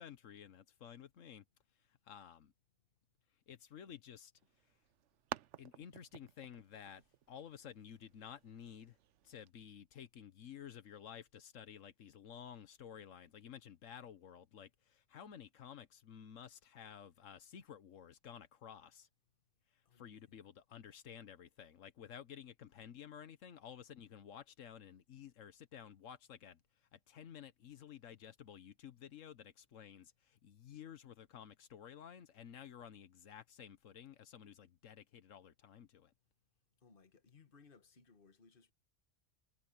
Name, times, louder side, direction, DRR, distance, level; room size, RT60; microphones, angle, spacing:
voice 1, 0.0-1.4 2.0-2.5 3.5-4.3 5.6-9.0 9.2-19.1 19.7-36.1, left 8 dB, 85° left, 1.3 m, -53 dB
sound 1, 4.4-9.5, right 12 dB, 75° right, 0.9 m, -52 dB
voice 2, 19.8-20.3 36.8-38.7, left 5 dB, 45° left, 1.6 m, -64 dB
omnidirectional pair, 1.3 m